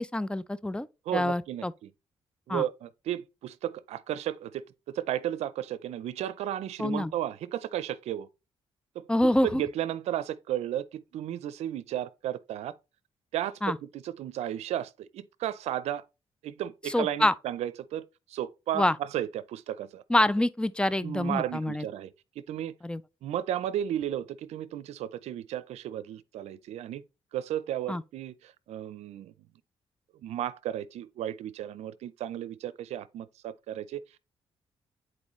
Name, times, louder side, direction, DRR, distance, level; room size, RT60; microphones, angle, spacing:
voice 1, 0.0-0.9 1.1-1.7 2.5-2.6 6.8-7.1 9.1-9.6 13.6-13.8 16.9-17.3 18.7-19.0 20.1-21.9 22.8-23.0 27.9-28.0, left 1 dB, 10° left, 0.5 m, -26 dB
voice 2, 1.1-1.9 2.5-8.3 8.9-9.0 9.4-12.7 13.3-16.0 16.4-20.0 21.0-22.1 22.4-22.7 23.2-27.0 27.3-29.3 30.2-34.0, right 11 dB, 85° right, 0.5 m, -34 dB
9.7 x 4.4 x 3.1 m
cardioid pair, 80°, 11 cm